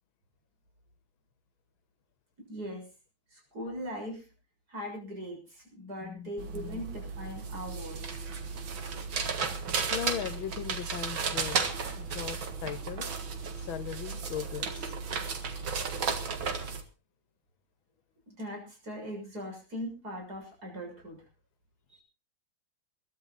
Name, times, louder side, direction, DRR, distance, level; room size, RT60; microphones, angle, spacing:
voice 1, 2.5-2.9 3.3-4.3 4.7-8.0 18.4-21.2 21.9-22.0, equal, 50° right, 7.3 m, -40 dB
voice 2, 6.0-6.8 9.9-11.6 12.0-13.1 13.7-14.8, left 10 dB, 90° left, 1.7 m, -38 dB
sound 1, 6.4-16.8, right 5 dB, 85° right, 2.5 m, -34 dB
21.5 x 12.0 x 4.2 m
omnidirectional pair, 2.1 m